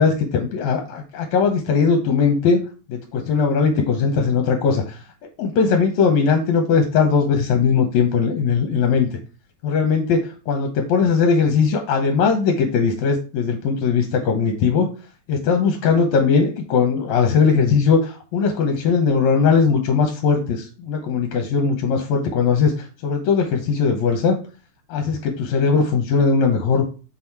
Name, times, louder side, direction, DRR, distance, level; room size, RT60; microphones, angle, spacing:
voice 1, 0.0-2.6 2.9-5.0 5.4-9.1 9.6-14.9 15.3-24.4 24.9-26.9, left 5 dB, 70° left, 4 dB, 2.0 m, -19 dB
5.8 x 4.1 x 4.6 m, 0.34 s
omnidirectional pair, 3.7 m